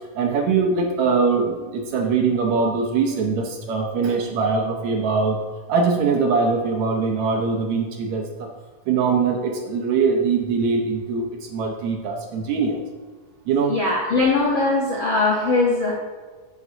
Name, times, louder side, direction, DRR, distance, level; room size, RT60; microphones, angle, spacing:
voice 1, 0.0-5.4 5.7-8.5 8.9-12.8 13.5-13.8, right 4 dB, 70° right, 2 dB, 1.8 m, -22 dB
voice 2, 13.7-16.0, left 3 dB, 70° left, -3 dB, 1.2 m, -20 dB
13.0 x 6.0 x 2.7 m, 1.4 s
omnidirectional pair, 3.8 m